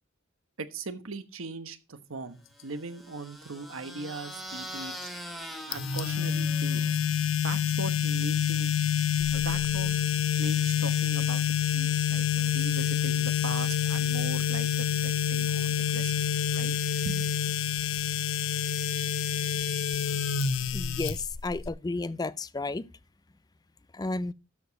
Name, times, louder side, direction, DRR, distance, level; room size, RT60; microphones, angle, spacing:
voice 1, 0.6-4.9 5.7-7.0 7.4-8.7 9.3-16.2 16.5-16.7 17.0-17.2, right 3 dB, 85° right, 1.1 m, -39 dB
sound 1, 2.6-7.1, equal, ahead, 1.6 m, -43 dB
sound 2, 5.7-21.7, left 9 dB, 70° left, 0.7 m, -27 dB
voice 2, 20.7-21.2 21.4-22.8 24.0-24.3, left 2 dB, 20° left, 0.4 m, -32 dB
13.0 x 4.8 x 5.2 m
head